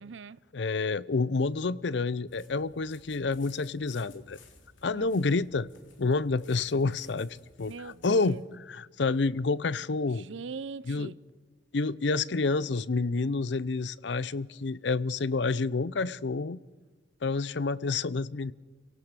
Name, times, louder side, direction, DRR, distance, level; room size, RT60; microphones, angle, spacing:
voice 1, 0.0-0.4 4.9-5.1 7.7-8.4 10.3-11.2, right 5 dB, 75° right, 0.6 m, -41 dB
voice 2, 0.5-4.4 4.8-5.7 6.0-10.3 10.8-11.1 11.7-16.6 17.2-18.5, left 3 dB, 65° left, 0.6 m, -29 dB
sound 1, 2.3-8.4, left 4 dB, 85° left, 3.2 m, -58 dB
28.0 x 17.5 x 6.8 m
head